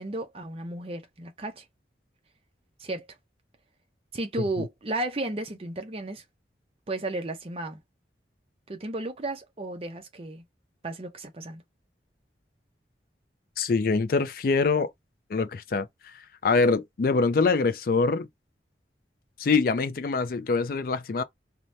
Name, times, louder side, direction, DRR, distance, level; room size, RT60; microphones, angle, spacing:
voice 1, 0.0-1.6 2.8-3.1 4.1-6.2 6.9-7.8 8.7-10.4 10.8-11.6, right 2 dB, 35° right, 0.6 m, -33 dB
voice 2, 13.6-14.9 15.3-15.9 16.4-18.3 19.4-21.2, left 4 dB, 55° left, 0.4 m, -24 dB
2.6 x 2.2 x 3.2 m
head